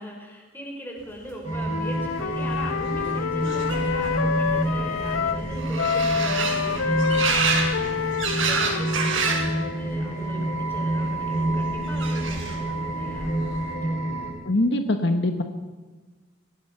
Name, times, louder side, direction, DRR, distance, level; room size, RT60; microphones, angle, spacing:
voice 1, 0.0-14.0, equal, 10° left, 1 dB, 4.9 m, -40 dB
sound 1, 1.4-14.3, right 1 dB, 35° left, 6.4 m, -28 dB
Wind instrument woodwind instrument, 1.7-5.4 5.8-9.8, left 6 dB, 85° left, 0.5 m, -28 dB
sound 2, 2.0-2.1 2.3-9.5 9.9-10.5 11.4-12.7 13.1-13.7, right 4 dB, 75° right, 5.9 m, -29 dB
voice 2, 14.4-15.4, left 1 dB, 60° left, 6 dB, 1.4 m, -22 dB
24.0 x 18.5 x 5.9 m, 1.3 s
head